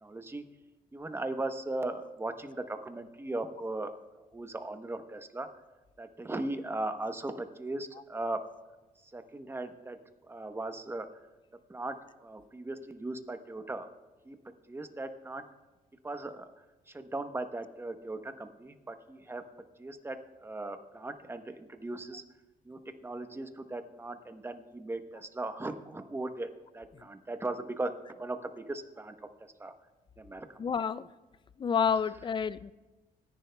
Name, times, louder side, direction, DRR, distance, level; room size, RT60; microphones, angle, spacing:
voice 1, 0.0-0.4 0.9-3.9 4.3-5.5 6.0-8.4 9.1-10.0 10.3-11.1 11.7-12.0 12.2-13.9 14.2-14.4 14.7-15.4 16.0-16.4 16.9-19.4 19.8-20.2 20.4-22.2 22.7-26.5 26.7-27.9 28.2-29.1 29.6-29.7 30.2-30.5, right 2 dB, 15° right, 7 dB, 0.9 m, -38 dB
voice 2, 30.6-31.0 31.6-32.7, left 6 dB, 30° left, 17 dB, 0.4 m, -29 dB
26.0 x 10.5 x 2.3 m, 1.1 s
cardioid pair, 100°, 16 cm